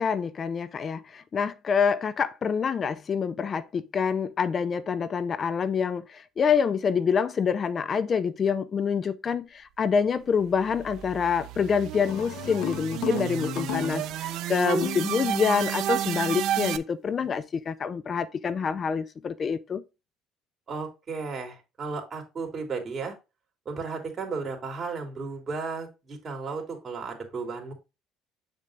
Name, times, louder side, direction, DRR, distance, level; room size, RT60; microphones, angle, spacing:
voice 1, 0.0-19.8, left 6 dB, 40° left, 0.5 m, -26 dB
sound 1, 10.4-16.8, right 12 dB, 70° right, 0.6 m, -31 dB
sound 2, 12.0-14.3 14.8-15.2, left 14 dB, 75° left, 0.8 m, -36 dB
voice 2, 20.7-23.1 23.6-27.7, right 4 dB, 40° right, 3.1 m, -34 dB
8.1 x 6.7 x 2.5 m
supercardioid pair, 90°, 0 cm